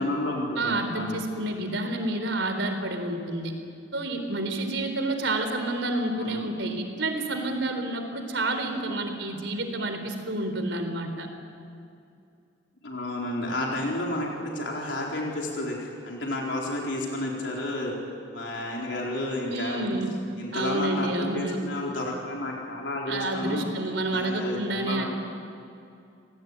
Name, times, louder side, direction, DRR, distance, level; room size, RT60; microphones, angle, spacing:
voice 1, 0.0-1.2 6.1-6.5 12.8-17.9 18.3-19.9 20.4-23.7 24.1-25.1, left 1 dB, 75° left, -2 dB, 4.2 m, -31 dB
voice 2, 0.6-3.5 3.9-11.3 19.5-20.1 20.5-21.6 23.1-25.1, right 2 dB, 85° right, 6 dB, 4.0 m, -29 dB
28.5 x 18.5 x 9.5 m, 2.5 s
head